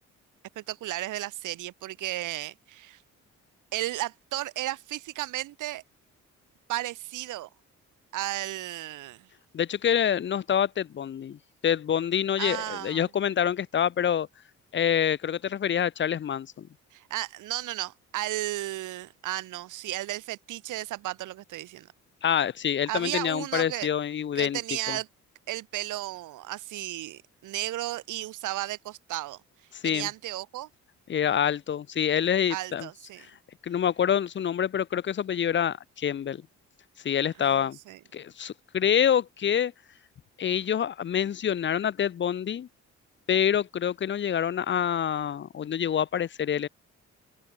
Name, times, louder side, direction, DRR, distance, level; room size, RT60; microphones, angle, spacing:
voice 1, 0.6-3.0 3.7-5.8 6.7-7.5 8.1-9.3 12.4-13.1 16.9-21.9 22.9-23.9 24.3-25.1 25.5-29.4 29.8-30.7 32.5-33.3 37.4-38.0, right 15 dB, 85° right, 2.5 m, -34 dB
voice 2, 9.5-14.3 14.7-16.7 22.2-24.6 24.9-25.0 29.7-30.1 31.1-32.9 33.6-36.4 37.0-37.8 38.1-39.7 40.4-42.7 43.3-46.7, left 9 dB, 40° left, 0.6 m, -26 dB
open air
cardioid pair, 90°, 30 cm